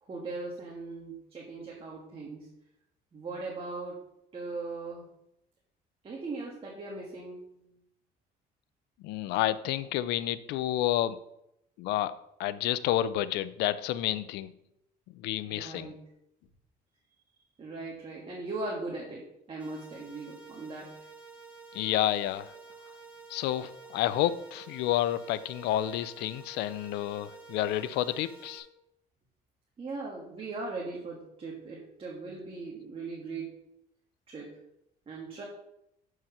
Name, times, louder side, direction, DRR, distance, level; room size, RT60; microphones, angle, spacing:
voice 1, 0.0-2.5 3.1-5.1 6.0-7.5 15.4-16.0 17.6-21.0 29.8-33.5 34.3-34.6 35.1-35.4, right 3 dB, 35° right, -3 dB, 1.6 m, -39 dB
voice 2, 9.0-11.2 11.8-12.1 12.4-14.5 15.1-15.9 21.7-22.5 23.3-28.7, left 13 dB, 90° left, 15 dB, 0.5 m, -30 dB
sound 1, 19.6-28.6, right 4 dB, 5° right, 1.4 m, -50 dB
7.6 x 4.7 x 5.6 m, 0.82 s
cardioid pair, 110°, 17 cm